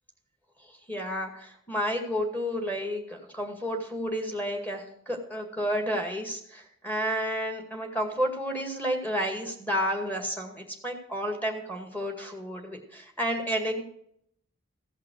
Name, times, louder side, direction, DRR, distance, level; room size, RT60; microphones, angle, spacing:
voice 1, 0.9-13.8, equal, 10° left, 2 dB, 2.1 m, -31 dB
15.5 x 5.7 x 6.4 m, 0.71 s
head